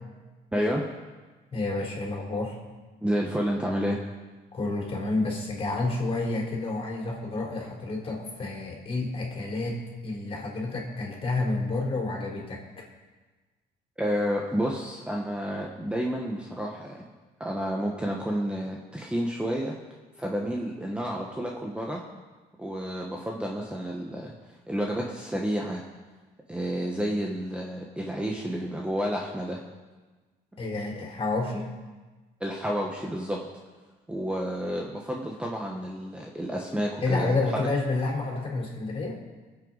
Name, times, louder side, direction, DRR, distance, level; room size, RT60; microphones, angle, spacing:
voice 1, 0.5-0.8 3.0-4.0 14.0-17.0 17.4-19.7 20.2-22.0 22.6-25.8 26.5-29.6 32.4-33.4 34.1-37.4, equal, 5° right, -1 dB, 1.2 m, -30 dB
voice 2, 1.5-2.6 4.5-9.8 10.0-12.8 30.6-31.7 37.0-39.2, left 3 dB, 35° left, -2 dB, 3.9 m, -29 dB
23.0 x 7.9 x 4.1 m, 1.3 s
cardioid pair, 110°, 17 cm